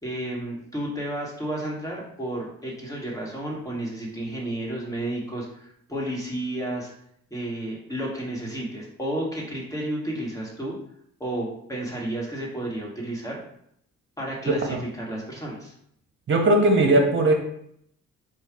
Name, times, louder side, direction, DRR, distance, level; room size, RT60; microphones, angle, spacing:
voice 1, 0.0-6.9 7.3-10.8 11.2-13.4 14.2-15.7, right 1 dB, 10° left, -3 dB, 1.6 m, -32 dB
voice 2, 16.3-17.3, right 2 dB, 40° right, 1 dB, 1.1 m, -18 dB
4.5 x 2.4 x 4.6 m, 0.71 s
cardioid pair, 90°, 30 cm